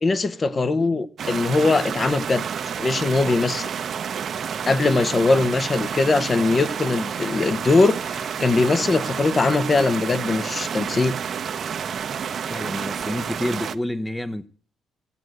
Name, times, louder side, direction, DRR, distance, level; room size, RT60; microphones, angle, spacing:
voice 1, 0.0-2.4 2.8-3.7 4.7-11.2, left 3 dB, 30° left, 1.0 m, -21 dB
sound 1, 1.2-13.7, right 7 dB, 55° right, 0.8 m, -30 dB
voice 2, 12.5-14.5, left 1 dB, 10° left, 0.8 m, -29 dB
15.0 x 7.8 x 7.8 m
cardioid pair, 90°, 0 cm